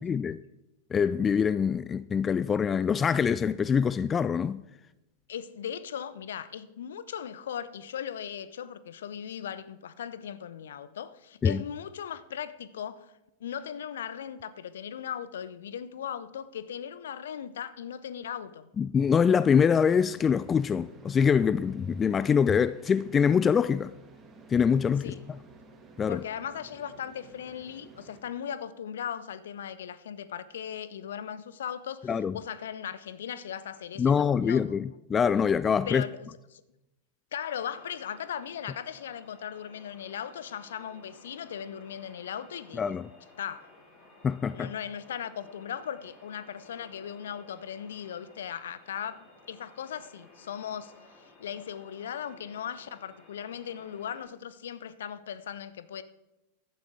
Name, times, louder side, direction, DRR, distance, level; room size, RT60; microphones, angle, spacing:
voice 1, 0.0-0.3 0.9-4.6 11.4-11.6 18.8-23.9 24.5-25.2 26.0-26.2 32.1-32.3 34.0-36.0 42.8-43.1 44.2-44.7, left 7 dB, 20° left, 0.3 m, -24 dB
voice 2, 5.3-13.1 13.4-18.7 25.0-25.2 26.1-34.8 35.9-36.6 37.3-42.8 43.4-43.7 44.5-56.0, left 9 dB, 60° left, 0.7 m, -38 dB
sound 1, 19.2-28.2, right 3 dB, 20° right, 2.2 m, -53 dB
sound 2, 37.5-54.2, left 2 dB, 35° left, 4.1 m, -56 dB
15.0 x 12.0 x 3.7 m
figure-of-eight pair, 90°, 0 cm